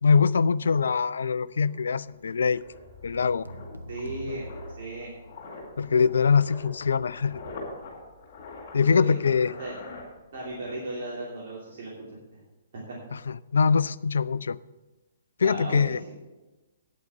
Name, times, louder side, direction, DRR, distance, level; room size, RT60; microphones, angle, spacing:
voice 1, 0.0-2.6 3.0-3.5 5.8-7.4 8.7-9.5 13.1-14.6 15.4-16.0, left 5 dB, 60° left, 0.3 m, -23 dB
sound 1, 1.6-10.7 10.9-11.2, left 3 dB, 40° left, 4.7 m, -45 dB
sound 2, 3.1-5.7, equal, 90° right, 0.8 m, -43 dB
voice 2, 3.9-4.4 4.8-5.1 8.8-9.2 9.6-9.7 10.3-11.9 12.9-13.0 15.4-15.9, right 2 dB, 50° right, 2.9 m, -35 dB
9.5 x 8.4 x 6.7 m
figure-of-eight pair, 125°, 0 cm